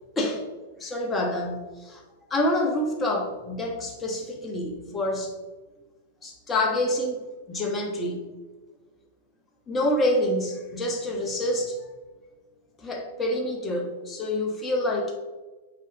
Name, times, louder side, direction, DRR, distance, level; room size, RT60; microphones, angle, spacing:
voice 1, 0.2-0.5 0.8-2.0 2.3-5.3 6.2-7.2 7.5-8.2 9.7-11.8 12.8-15.2, left 1 dB, 20° left, 1 dB, 1.4 m, -27 dB
7.3 x 4.9 x 3.0 m, 1.2 s
hypercardioid pair, 105°, 0 cm